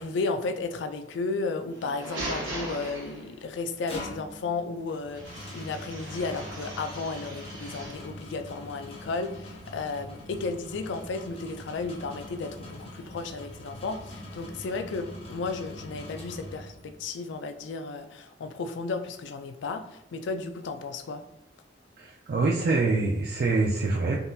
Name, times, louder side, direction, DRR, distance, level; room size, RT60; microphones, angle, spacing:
voice 1, 0.0-21.2, left 3 dB, 70° left, 8 dB, 0.3 m, -34 dB
sound 1, 1.7-3.6 5.2-8.1, right 1 dB, 85° right, 1.1 m, -39 dB
sound 2, 3.6-17.0, left 1 dB, 35° left, 0.6 m, -43 dB
voice 2, 22.0-24.2, right 3 dB, 55° right, -2 dB, 0.4 m, -25 dB
3.6 x 2.6 x 2.3 m, 0.83 s
head